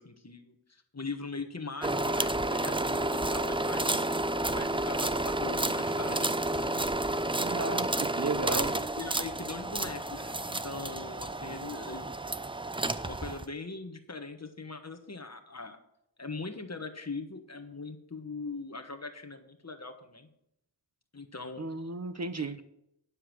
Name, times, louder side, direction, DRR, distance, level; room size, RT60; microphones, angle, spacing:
voice 1, 0.0-4.0 4.5-6.9 8.5-12.1 12.7-15.8 16.2-20.3 21.1-21.6 22.4-22.6, left 3 dB, 35° left, 5 dB, 1.5 m, -41 dB
sound 1, 1.8-13.4, right 2 dB, 10° right, 0.5 m, -31 dB
voice 2, 7.4-8.7 21.6-22.6, right 3 dB, 40° right, 11 dB, 0.9 m, -34 dB
9.8 x 7.2 x 6.2 m, 0.79 s
wide cardioid pair, 45°, 43 cm